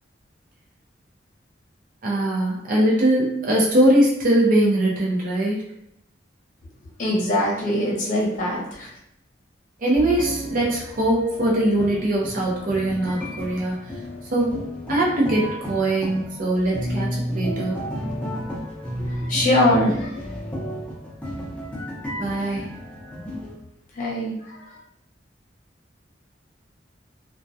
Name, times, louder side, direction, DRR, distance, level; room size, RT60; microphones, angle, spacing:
voice 1, 2.0-5.6 9.8-13.7 14.3-14.5 14.9-17.1 17.3-17.8 22.1-22.7 23.1-23.3, right 1 dB, 50° right, -3 dB, 0.5 m, -21 dB
voice 2, 7.0-8.9 19.2-20.1 24.0-24.3, left 1 dB, 45° left, -4 dB, 0.7 m, -22 dB
sound 1, 9.9-23.5, equal, 5° left, 0.6 m, -32 dB
2.2 x 2.1 x 2.6 m, 0.76 s
head